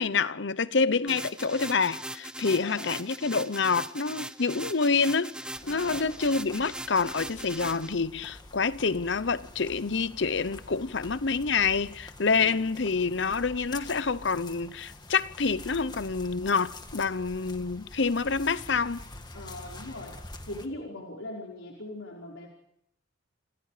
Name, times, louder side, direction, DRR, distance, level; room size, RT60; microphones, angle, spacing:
voice 1, 0.0-5.4 5.7-19.0, left 4 dB, 65° left, 0.8 m, -27 dB
sound 1, 1.1-7.9, right 1 dB, 5° right, 0.8 m, -40 dB
voice 2, 2.5-2.9 5.6-6.1 12.3-12.6 19.3-20.1 20.5-22.5, left 1 dB, 90° left, 5.1 m, -40 dB
sound 2, 5.6-20.7, left 2 dB, 20° left, 1.9 m, -46 dB
28.0 x 27.5 x 5.0 m
head